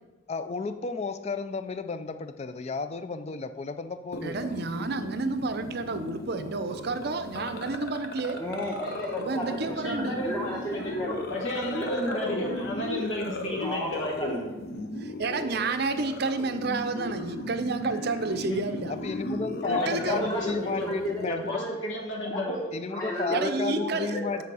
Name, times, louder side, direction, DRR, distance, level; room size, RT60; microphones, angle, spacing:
voice 1, 0.3-4.5 18.9-21.6 22.7-24.4, left 4 dB, 30° left, 10 dB, 0.3 m, -33 dB
sound 1, 4.1-21.3, left 2 dB, 50° left, 0.7 m, -37 dB
voice 2, 4.2-8.4 9.2-10.2 15.0-18.9 19.8-20.3 23.3-24.1, right 3 dB, 50° right, 9 dB, 0.5 m, -30 dB
voice 3, 8.3-11.2 11.7-12.7 13.6-14.3 19.6-21.7 22.2-22.6 22.9-24.4, equal, 15° left, -5 dB, 1.0 m, -34 dB
voice 4, 9.3-10.4 10.7-11.0 11.3-14.4 18.2-18.9 19.6-20.9 21.2-22.6, left 1 dB, 65° left, -1 dB, 1.2 m, -33 dB
8.4 x 4.6 x 4.7 m, 1.1 s
head